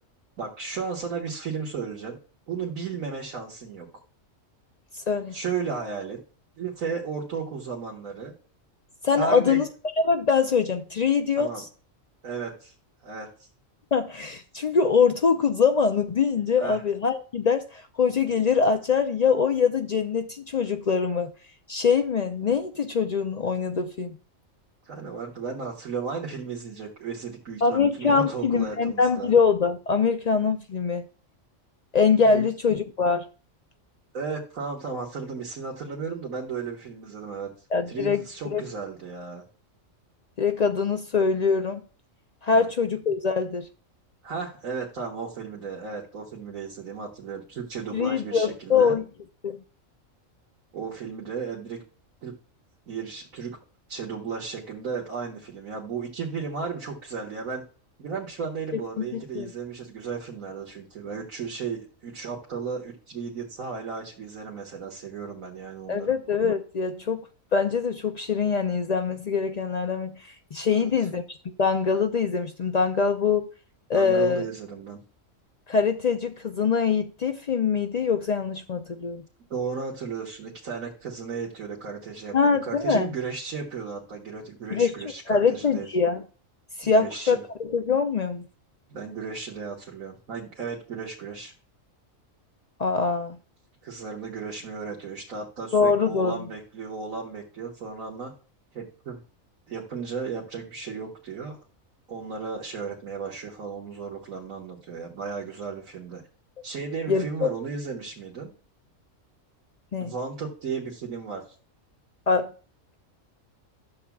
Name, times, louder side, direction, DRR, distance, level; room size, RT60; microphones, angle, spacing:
voice 1, 0.4-2.2 2.5-3.9 5.3-6.2 6.6-8.3 9.2-9.7 11.4-11.6 12.2-12.7 13.0-13.5 16.6-16.8 24.8-29.3 32.3-32.5 34.1-37.5 37.9-39.4 42.5-42.7 44.2-49.0 50.7-51.8 52.2-52.4 52.9-53.6 53.9-57.6 58.0-66.1 70.7-70.9 73.9-75.0 79.5-85.9 86.8-87.4 88.9-91.5 93.8-98.3 98.7-99.2 99.7-101.6 102.1-106.2 106.6-108.5 110.0-111.4, right 5 dB, 85° right, 1.8 m, -34 dB
voice 2, 4.9-5.3 9.0-9.7 10.0-11.7 13.9-21.3 21.7-24.2 27.6-31.1 31.9-33.3 37.7-38.2 38.5-38.6 40.4-41.8 42.4-43.7 47.9-49.0 49.4-49.6 59.1-59.5 65.9-67.2 67.5-73.4 73.9-74.4 75.7-79.2 82.3-83.1 84.7-84.9 85.3-86.2 86.8-88.4 92.8-93.4 95.7-96.4 107.1-107.5 109.9-110.1 112.3-112.5, left 5 dB, 65° left, 0.4 m, -23 dB
12.0 x 7.1 x 2.3 m
omnidirectional pair, 1.4 m